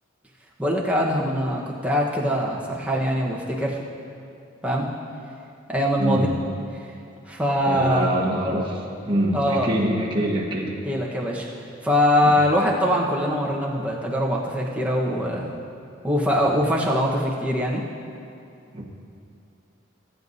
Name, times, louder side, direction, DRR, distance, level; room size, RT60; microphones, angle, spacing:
voice 1, 0.6-3.8 4.6-4.9 5.7-6.3 7.3-8.1 9.3-9.7 10.8-11.5 11.8-15.5 16.0-17.8, equal, 5° right, -4 dB, 1.2 m, -22 dB
voice 2, 7.6-10.7 12.2-12.4 18.7-18.8, right 1 dB, 25° right, -4 dB, 1.5 m, -25 dB
20.0 x 9.2 x 2.8 m, 2.5 s
head